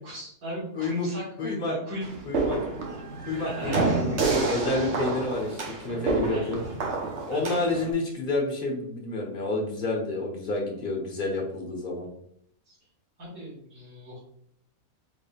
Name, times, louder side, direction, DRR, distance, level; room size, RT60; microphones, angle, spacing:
voice 1, 0.0-2.1 3.3-4.5 5.0-5.2 6.3-6.9 7.2-7.6 12.7-12.8 13.2-14.2, equal, 90° right, -9 dB, 2.3 m, -37 dB
voice 2, 0.8-1.1 1.4-1.7 2.2-2.6 3.3-6.6 7.2-12.1, left 2 dB, 40° left, -1 dB, 1.3 m, -29 dB
sound 1, 2.0-7.9, right 3 dB, 55° right, 1.1 m, -29 dB
5.0 x 3.8 x 2.3 m, 0.68 s
omnidirectional pair, 1.5 m